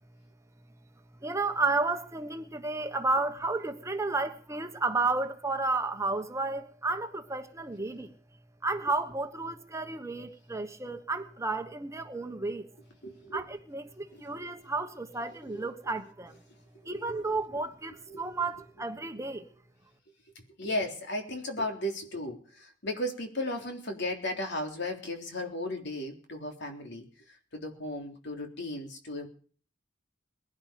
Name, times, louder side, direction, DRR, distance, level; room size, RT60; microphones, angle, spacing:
voice 1, 1.2-8.1 8.6-12.7 13.3-16.4 16.8-19.5, right 3 dB, 15° right, 1.3 m, -32 dB
voice 2, 13.0-13.5 14.1-14.5 15.5-15.7 16.5-16.6 16.9-17.3 18.1-18.3 20.6-29.3, left 1 dB, 60° left, 3.6 m, -36 dB
22.0 x 10.5 x 5.2 m
head